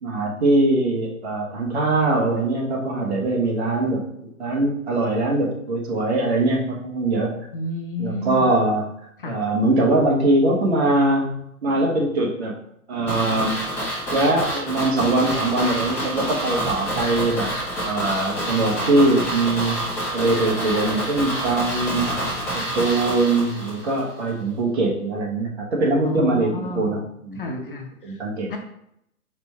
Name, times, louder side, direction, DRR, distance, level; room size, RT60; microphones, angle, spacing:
voice 1, 0.0-7.4 8.0-8.9 9.2-11.4 11.6-12.5 12.9-13.6 14.1-17.5 17.8-19.8 20.1-22.2 22.5-27.6 28.0-28.5, right 2 dB, 50° right, -1 dB, 1.2 m, -22 dB
voice 2, 7.5-8.6 9.2-9.4 26.0-27.0 27.3-28.2 28.5-28.6, left 1 dB, 40° left, 3 dB, 0.6 m, -31 dB
sound 1, 13.1-24.0 24.3-24.4, right 1 dB, 5° left, 0.8 m, -27 dB
4.4 x 2.5 x 4.2 m, 0.75 s
figure-of-eight pair, 125°, 43 cm